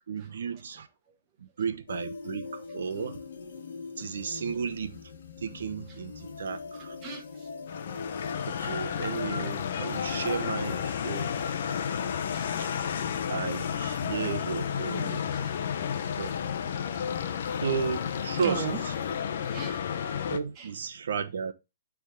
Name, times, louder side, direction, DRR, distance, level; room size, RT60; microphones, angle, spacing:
voice 1, 0.1-0.9 1.4-3.2 4.0-5.0 5.4-7.0 8.5-11.4 12.6-12.7 13.3-15.3 16.2-16.4 17.6-18.9 20.3-21.5, right 6 dB, 80° right, 0.9 m, -34 dB
sound 1, 1.9-19.2, left 5 dB, 75° left, 1.2 m, -42 dB
voice 2, 7.0-7.5 12.3-12.5 15.3-16.3 16.8-17.0 18.4-18.8 19.4-19.8 20.6-20.7, right 6 dB, 25° right, 1.3 m, -39 dB
sound 2, 7.7-20.4, left 8 dB, 55° left, 0.7 m, -32 dB
9.2 x 3.6 x 3.7 m
hypercardioid pair, 165°, 0 cm